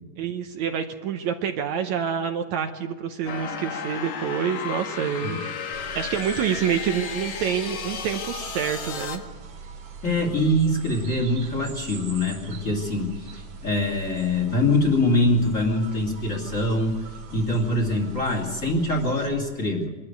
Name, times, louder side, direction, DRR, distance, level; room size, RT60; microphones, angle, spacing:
voice 1, 0.2-5.4 5.7-9.2, right 8 dB, 70° right, 6 dB, 2.0 m, -27 dB
sound 1, 3.3-9.2, left 6 dB, 65° left, 2.8 m, -33 dB
sound 2, 5.7-19.3, right 5 dB, 90° right, 3.6 m, -41 dB
voice 2, 10.0-17.1 17.3-19.9, left 1 dB, 25° left, 0 dB, 2.6 m, -24 dB
24.0 x 13.5 x 9.4 m, 1.3 s
omnidirectional pair, 3.7 m